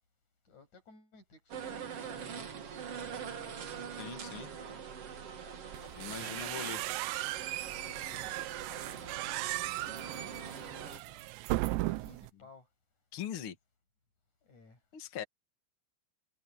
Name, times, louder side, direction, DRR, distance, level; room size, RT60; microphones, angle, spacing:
voice 1, 0.4-2.6 2.9-6.4 7.7-8.3 8.7-11.3 11.9-12.7 14.4-14.8, left 3 dB, 40° left, 8.6 m, -57 dB
sound 1, 1.5-11.0, right 7 dB, 55° right, 1.7 m, -43 dB
voice 2, 4.0-4.5 6.0-6.8 11.8-12.0 13.1-13.5 14.9-15.2, left 9 dB, 85° left, 1.1 m, -41 dB
sound 2, 5.7-12.3, right 19 dB, 80° right, 2.6 m, -37 dB
omnidirectional pair, 5.6 m